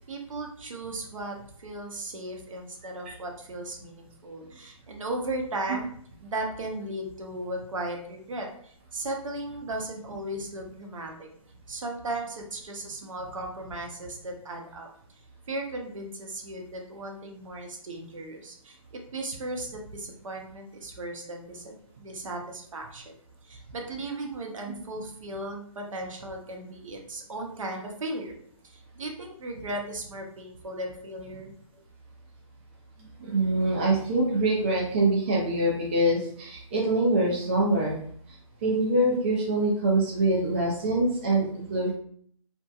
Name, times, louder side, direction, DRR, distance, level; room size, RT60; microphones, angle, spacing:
voice 1, 0.1-5.9 6.2-11.3 11.7-14.9 15.5-23.1 23.4-28.3 28.6-31.5, right 2 dB, 65° right, 2 dB, 0.7 m, -36 dB
voice 2, 33.0-38.0 38.6-41.9, right 2 dB, 20° right, -3 dB, 0.4 m, -24 dB
2.8 x 2.1 x 2.3 m, 0.62 s
hypercardioid pair, 155°, 18 cm